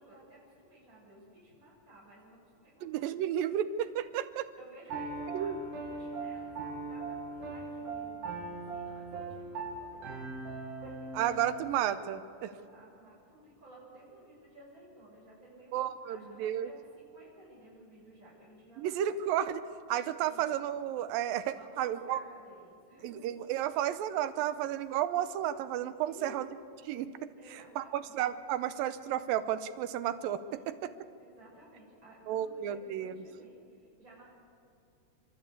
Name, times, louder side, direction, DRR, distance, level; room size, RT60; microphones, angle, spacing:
voice 1, 0.0-3.2 3.4-3.6 4.6-10.2 10.4-11.3 12.4-19.2 20.2-20.6 21.6-23.3 26.0-26.6 27.4-28.2 30.5-34.2, right 1 dB, 20° right, -6 dB, 7.1 m, -56 dB
voice 2, 2.8-4.5 5.3-5.6 11.1-12.5 15.7-16.7 18.8-19.6 19.9-22.2 23.0-26.5 26.9-27.3 27.8-30.9 32.3-33.2, right 11 dB, 85° right, 12 dB, 2.5 m, -32 dB
Piano, 4.9-11.7, right 3 dB, 65° right, 3.9 m, -40 dB
27.5 x 13.0 x 8.4 m, 2.5 s
omnidirectional pair, 4.0 m